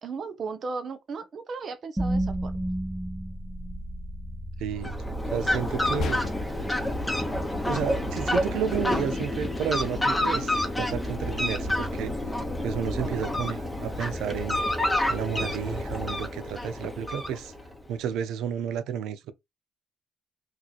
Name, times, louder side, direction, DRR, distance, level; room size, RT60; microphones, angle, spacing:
voice 1, 0.0-2.5 13.0-13.3, right 4 dB, 55° right, 0.7 m, -36 dB
sound 1, 2.0-14.1, right 1 dB, 10° right, 0.4 m, -36 dB
voice 2, 4.6-5.0 5.3-6.2 7.7-12.1 12.6-14.6 15.1-17.5 17.9-19.3, right 8 dB, 90° right, 0.4 m, -31 dB
Fowl, 4.7-17.8, left 1 dB, 10° left, 0.9 m, -29 dB
sound 2, 6.0-6.7, left 4 dB, 65° left, 0.6 m, -34 dB
3.0 x 2.5 x 4.0 m
cardioid pair, 90°, 0 cm